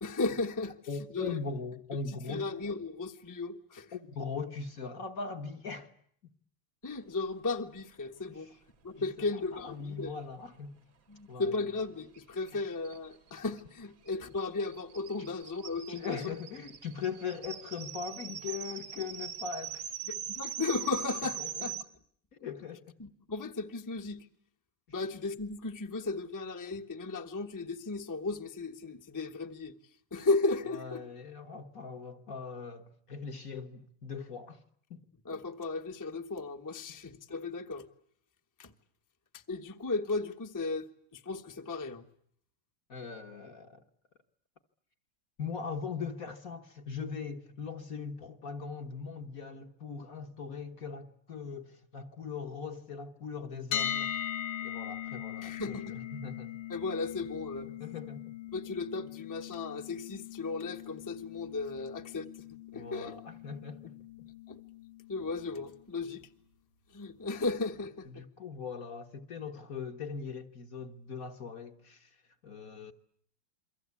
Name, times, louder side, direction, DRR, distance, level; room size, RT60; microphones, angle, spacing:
voice 1, 0.0-0.7 1.1-1.4 2.3-3.9 6.8-8.5 8.8-10.1 11.1-16.3 20.1-21.8 23.0-24.3 24.9-29.8 30.1-31.0 35.2-37.9 38.6-38.7 39.3-40.9 41.1-42.1 55.4-56.0 56.7-57.7 58.5-62.4 62.7-63.2 64.5-64.6 65.1-66.3 66.9-68.2, left 3 dB, 10° left, 0.9 m, -35 dB
voice 2, 0.9-2.5 3.9-5.9 8.3-8.6 9.0-9.3 9.5-10.8 11.3-11.7 12.5-12.6 15.2-15.3 15.9-19.9 21.4-21.7 22.3-23.0 30.7-34.6 34.9-35.0 42.9-43.8 45.4-54.2 54.6-56.5 57.6-58.4 62.7-64.3 68.0-72.9, left 5 dB, 45° left, 1.5 m, -40 dB
sound 1, 12.1-12.2 12.5-12.6 12.8-21.8, right 8 dB, 50° right, 1.7 m, -41 dB
sound 2, 53.7-65.6, left 10 dB, 75° left, 2.5 m, -40 dB
28.5 x 23.5 x 8.4 m
omnidirectional pair, 2.4 m